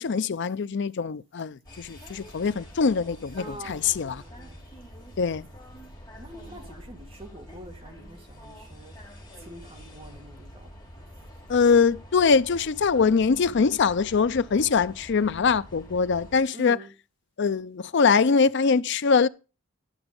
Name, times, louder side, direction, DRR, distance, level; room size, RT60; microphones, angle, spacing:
voice 1, 0.0-4.1 5.2-5.5 11.5-16.8 17.4-19.3, left 5 dB, 60° left, 0.5 m, -23 dB
sound 1, 1.6-16.4, equal, 20° left, 3.6 m, -46 dB
voice 2, 3.4-4.6 6.1-11.1 16.5-16.9, right 1 dB, 25° right, 2.1 m, -45 dB
11.5 x 6.0 x 5.3 m
head